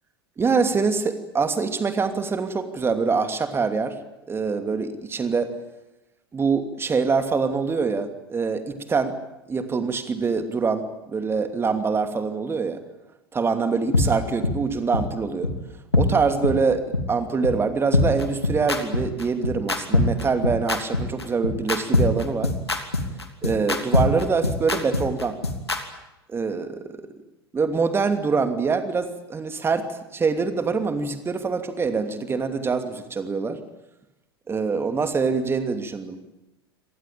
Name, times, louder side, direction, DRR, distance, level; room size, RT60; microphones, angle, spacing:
voice 1, 0.4-3.9 4.3-5.5 6.3-9.2 9.5-12.8 13.3-15.5 15.9-22.5 23.4-25.4 26.3-27.0 27.5-29.9 30.1-33.6 34.5-36.1, right 4 dB, 20° right, 9 dB, 2.8 m, -24 dB
sound 1, 13.9-14.0 14.4-14.5 14.9-15.0 15.4-15.5 15.9-16.0 16.4-16.5 16.9-17.0 17.4-17.5 17.9-25.8, left 2 dB, 85° left, 2.9 m, -21 dB
26.5 x 19.0 x 9.1 m, 0.95 s
figure-of-eight pair, 85°, 13 cm